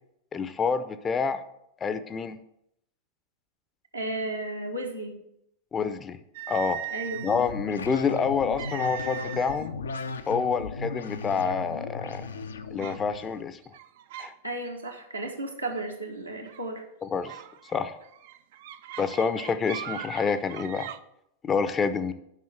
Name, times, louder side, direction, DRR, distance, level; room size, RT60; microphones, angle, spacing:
voice 1, 0.3-1.4 1.8-2.4 5.7-6.2 6.5-6.8 7.2-9.7 10.3-12.3 12.7-13.7 14.2-14.3 17.0-17.3 17.7-18.0 19.0-20.9 21.4-22.1, left 5 dB, 20° left, 12 dB, 0.6 m, -27 dB
voice 2, 3.9-5.2 6.9-7.3 14.4-16.8, right 2 dB, 85° right, 0 dB, 1.5 m, -34 dB
sound 1, 6.3-7.5 8.6-9.7 10.0-10.3 11.0-11.1 11.6-12.0 12.8-13.0 13.6-14.4 14.7-15.0 16.5-16.7 17.2-21.0, right 12 dB, 55° right, 0.4 m, -40 dB
sound 2, 7.0-13.4, left 4 dB, 70° left, 0.5 m, -37 dB
7.4 x 5.6 x 6.2 m, 0.78 s
figure-of-eight pair, 90°, 0 cm